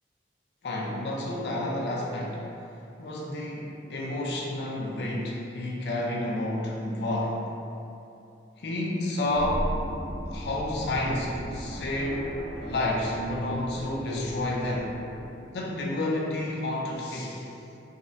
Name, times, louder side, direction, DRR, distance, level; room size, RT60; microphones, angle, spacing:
voice 1, 0.6-2.5 3.0-7.4 8.6-9.7 10.3-14.9 15.5-17.5, left 1 dB, 70° left, -3 dB, 0.4 m, -30 dB
sound 1, 9.2-15.3, equal, 60° right, 0.7 m, -37 dB
3.4 x 2.0 x 2.6 m, 2.8 s
head